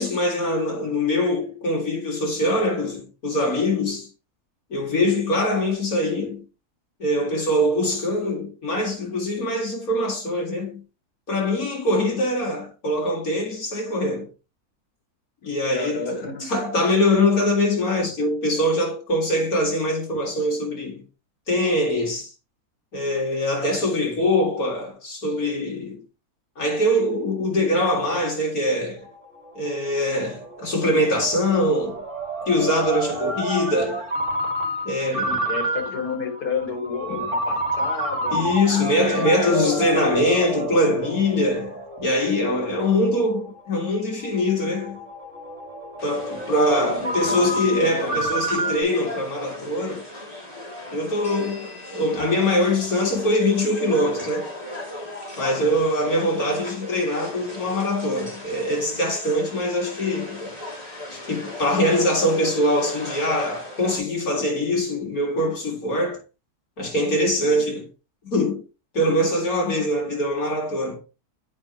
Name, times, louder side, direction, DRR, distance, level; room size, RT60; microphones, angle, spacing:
voice 1, 0.0-4.1 4.7-6.4 7.0-10.8 11.3-14.3 15.4-21.0 21.5-22.3 22.9-26.0 26.6-29.0 29.5-32.0 32.5-34.1 34.8-35.5 37.1-37.2 38.3-45.0 46.0-50.0 50.9-54.5 55.4-60.5 61.1-66.2 66.8-67.9 68.3-68.6 68.9-71.0, left 1 dB, 70° left, 2.6 m, -23 dB
voice 2, 15.7-16.6 35.5-40.1 46.5-48.3 67.3-67.6, left 5 dB, 85° left, 2.0 m, -31 dB
Ringtone, 29.1-48.8, right 2 dB, 55° right, 2.4 m, -30 dB
sound 1, 46.0-64.0, left 1 dB, 25° left, 2.7 m, -38 dB
8.6 x 5.1 x 2.9 m
omnidirectional pair, 1.6 m